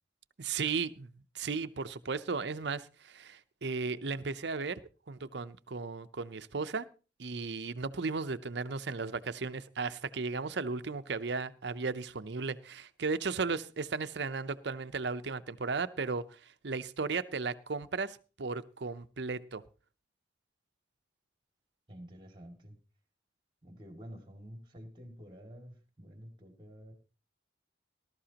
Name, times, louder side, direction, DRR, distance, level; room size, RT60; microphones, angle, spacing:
voice 1, 0.4-1.1 1.3-4.8 5.1-6.9 7.2-16.4 16.6-19.6, right 4 dB, 65° right, 0.7 m, -35 dB
voice 2, 21.9-22.8 23.6-26.9, equal, 25° right, 2.3 m, -49 dB
19.5 x 12.5 x 2.9 m
head